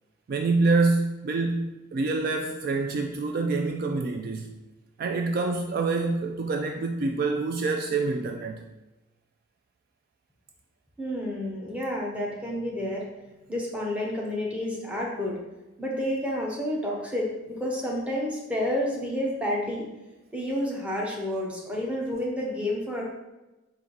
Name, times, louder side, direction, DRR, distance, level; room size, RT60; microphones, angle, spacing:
voice 1, 0.3-4.5 5.0-8.6, right 3 dB, 50° right, 3 dB, 0.3 m, -26 dB
voice 2, 11.0-13.1 13.5-15.4 15.8-19.9 20.3-23.0, left 1 dB, 5° right, -3 dB, 0.7 m, -30 dB
4.5 x 2.5 x 3.9 m, 1.1 s
head